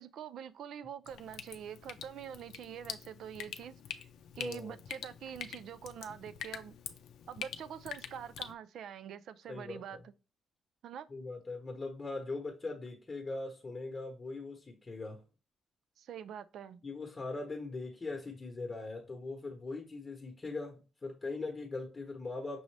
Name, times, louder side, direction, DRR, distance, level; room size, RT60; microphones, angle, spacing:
voice 1, 0.0-3.8 4.3-6.7 7.3-10.1 10.8-11.1 16.0-16.8, right 8 dB, 70° right, 0.4 m, -45 dB
Drip, 1.1-8.5, left 9 dB, 80° left, 0.5 m, -45 dB
voice 2, 4.3-4.7 9.5-10.0 11.1-15.2 16.8-22.6, left 3 dB, 25° left, 0.9 m, -41 dB
6.1 x 2.6 x 3.2 m
cardioid pair, 125°, 0 cm